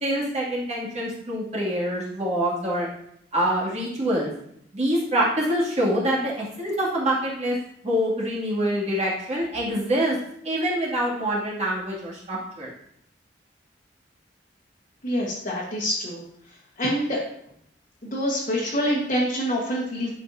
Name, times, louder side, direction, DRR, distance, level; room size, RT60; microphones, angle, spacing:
voice 1, 0.0-2.9 3.3-4.3 4.7-7.6 7.8-10.2 10.4-12.7, equal, 40° right, -5 dB, 2.3 m, -25 dB
voice 2, 15.0-16.2 16.8-17.2 18.0-20.1, equal, 45° left, -5 dB, 1.4 m, -26 dB
10.5 x 5.6 x 2.7 m, 0.71 s
head